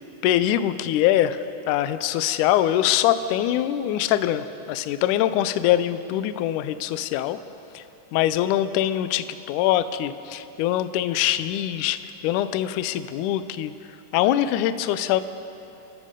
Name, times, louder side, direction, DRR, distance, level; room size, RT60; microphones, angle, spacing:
voice 1, 0.2-1.4 1.7-7.4 7.7-7.8 8.1-13.7 14.1-15.2, left 12 dB, 80° left, 12 dB, 1.9 m, -23 dB
26.5 x 14.0 x 3.8 m, 2.9 s
omnidirectional pair, 3.9 m